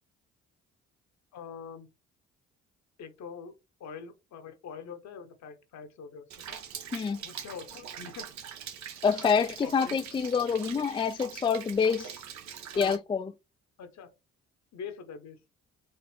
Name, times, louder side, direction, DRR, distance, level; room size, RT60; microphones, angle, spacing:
voice 1, 1.3-1.9 3.0-6.6 7.2-8.3 9.6-10.0 12.7-13.0 13.8-14.1 14.7-15.4, left 6 dB, 70° left, 1.1 m, -44 dB
Rain, 6.3-13.0, right 8 dB, 70° right, 0.8 m, -43 dB
voice 2, 9.0-12.1 12.8-13.3, left 6 dB, 20° left, 0.3 m, -27 dB
4.4 x 2.5 x 3.4 m
supercardioid pair, 60°, 29 cm